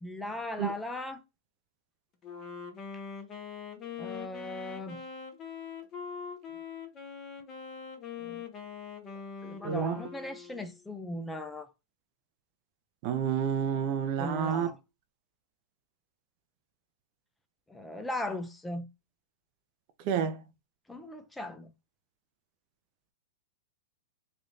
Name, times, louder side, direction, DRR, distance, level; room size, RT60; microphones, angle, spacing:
voice 1, 0.0-1.2 4.0-5.0 8.2-8.4 9.4-11.7 14.2-14.8 17.7-18.9 20.9-21.7, left 1 dB, 5° left, 0.6 m, -38 dB
Wind instrument woodwind instrument, 2.2-10.9, left 6 dB, 30° left, 1.0 m, -43 dB
voice 2, 9.6-10.0 13.0-14.7 20.0-20.4, right 8 dB, 45° right, 0.7 m, -29 dB
3.3 x 2.5 x 4.0 m
hypercardioid pair, 120°, 0 cm